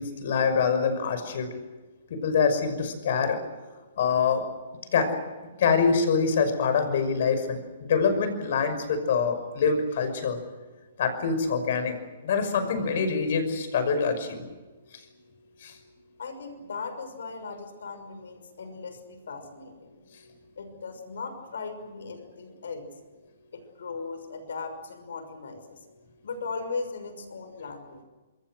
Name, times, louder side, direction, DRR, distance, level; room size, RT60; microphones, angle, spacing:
voice 1, 0.0-1.5 2.1-3.4 4.0-4.4 4.9-5.2 5.6-10.4 11.0-11.9 12.2-14.4 15.6-15.7, left 5 dB, 55° left, 9 dB, 5.8 m, -25 dB
voice 2, 16.2-20.0 20.6-22.9 23.5-25.8 26.2-28.0, left 4 dB, 80° left, 9 dB, 6.1 m, -38 dB
28.0 x 22.5 x 6.5 m, 1.2 s
hypercardioid pair, 155°, 0 cm